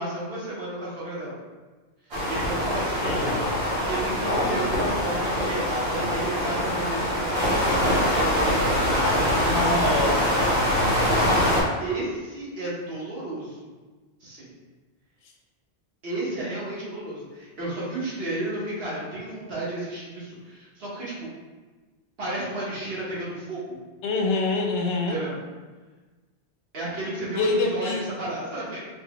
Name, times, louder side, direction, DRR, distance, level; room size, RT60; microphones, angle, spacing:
voice 1, 0.0-1.4 2.1-3.4 3.9-8.7 11.2-13.7 14.2-14.5 16.0-21.3 22.2-23.8 25.1-25.4 26.7-28.8, right 1 dB, 60° right, -7 dB, 1.3 m, -32 dB
sound 1, 2.1-11.6, equal, 80° right, 1.1 m, -24 dB
voice 2, 3.0-3.4 4.3-4.6 9.1-11.5 24.0-25.2 27.3-28.0, left 3 dB, 90° left, 1 dB, 0.9 m, -27 dB
4.2 x 2.1 x 2.9 m, 1.3 s
omnidirectional pair, 1.1 m